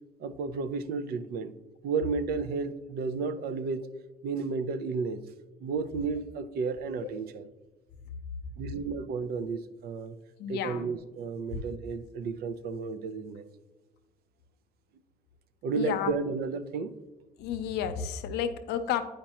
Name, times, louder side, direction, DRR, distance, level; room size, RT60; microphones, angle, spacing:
voice 1, 0.2-1.5 1.8-3.9 4.2-5.2 5.6-7.5 8.6-10.1 10.5-13.4 15.6-16.9, right 4 dB, 65° right, 0.5 m, -32 dB
voice 2, 10.4-10.9 15.7-16.1 17.4-19.0, left 9 dB, 80° left, 0.6 m, -31 dB
8.7 x 5.1 x 2.8 m
cardioid pair, 110°, 17 cm